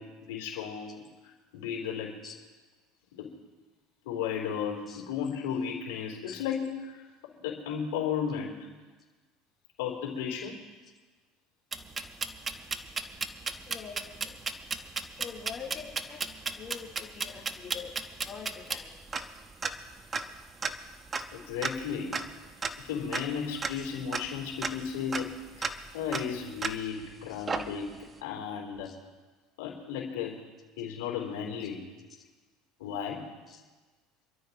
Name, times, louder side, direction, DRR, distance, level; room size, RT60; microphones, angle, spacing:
voice 1, 0.0-2.1 3.1-3.3 4.0-7.0 7.3-8.7 9.8-10.6 21.3-22.2 22.8-27.9 28.2-28.9 29.6-30.4 30.8-31.8 32.8-33.3, left 7 dB, 90° left, -1 dB, 3.3 m, -34 dB
sound 1, 11.7-27.1 27.5-28.1, right 4 dB, 25° right, 0.9 m, -36 dB
voice 2, 13.7-14.4 15.2-16.2 16.5-17.9 18.2-18.9 23.7-23.8 27.4-27.5 28.8-28.9 32.2-32.3 33.5-33.6, left 6 dB, 30° left, -4 dB, 3.4 m, -44 dB
26.5 x 13.0 x 3.0 m, 1.3 s
supercardioid pair, 110°, 0 cm